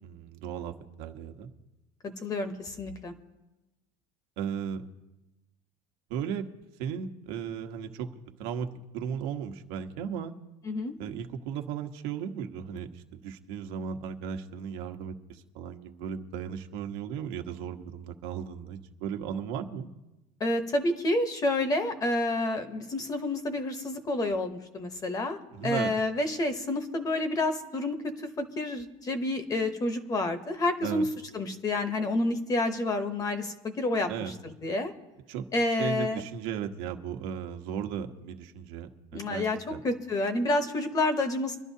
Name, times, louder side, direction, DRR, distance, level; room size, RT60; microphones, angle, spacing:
voice 1, 0.0-1.5 4.4-4.8 6.1-6.5 6.8-8.1 8.4-8.7 8.9-10.3 11.0-19.9 25.5-25.9 30.8-31.0 34.1-34.3 35.3-35.4 35.8-39.8, right 8 dB, 75° right, 5 dB, 1.1 m, -36 dB
voice 2, 2.2-3.1 10.7-10.9 20.4-31.1 31.3-34.1 34.4-34.9 35.5-36.2 39.1-39.6 39.8-41.6, left 2 dB, 20° left, 8 dB, 0.8 m, -29 dB
25.0 x 11.5 x 2.8 m, 1.0 s
cardioid pair, 180°, 18 cm